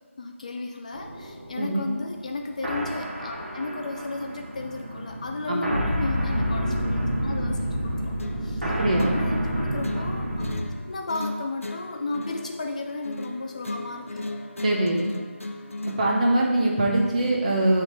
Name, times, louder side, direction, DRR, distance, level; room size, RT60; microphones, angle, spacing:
voice 1, 0.2-8.1 8.4-14.3, left 3 dB, 30° left, 3 dB, 0.5 m, -34 dB
sound 1, 0.9-10.6, equal, 55° right, 1.5 m, -29 dB
voice 2, 1.6-1.9 5.5-5.8 8.6-9.2 14.6-15.1 15.9-17.8, right 1 dB, 30° right, -1 dB, 1.2 m, -23 dB
sound 2, 8.2-16.2, left 2 dB, 75° left, 0.7 m, -37 dB
9.6 x 3.8 x 4.6 m, 1.3 s
figure-of-eight pair, 160°, 7 cm